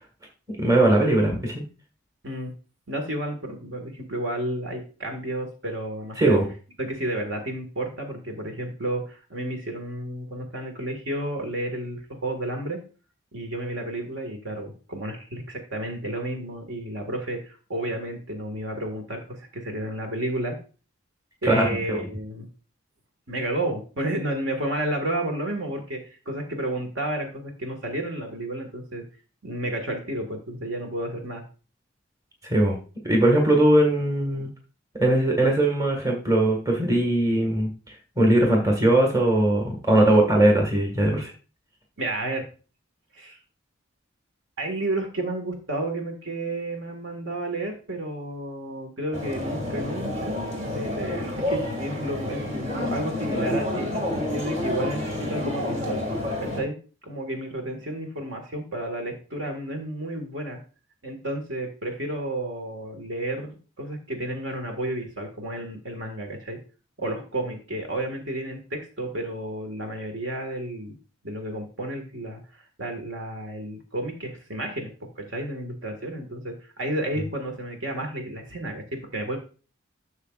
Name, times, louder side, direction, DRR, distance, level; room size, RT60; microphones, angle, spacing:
voice 1, 0.5-1.6 6.2-6.5 21.4-21.8 32.4-32.8 33.0-34.5 35.0-37.7 38.2-41.3, right 1 dB, 15° right, 1 dB, 1.6 m, -20 dB
voice 2, 2.9-6.4 6.8-12.8 13.3-20.6 21.4-22.5 23.3-29.0 29.4-31.4 42.0-42.4 43.1-43.4 44.6-56.0 56.4-56.7 57.0-60.6 61.0-66.6 67.0-71.0 71.2-74.9 75.2-78.8 79.1-79.4, right 1 dB, 60° right, 3 dB, 1.8 m, -31 dB
sound 1, 49.1-56.6, left 1 dB, 30° right, 2.1 m, -29 dB
11.5 x 6.6 x 2.4 m, 0.36 s
head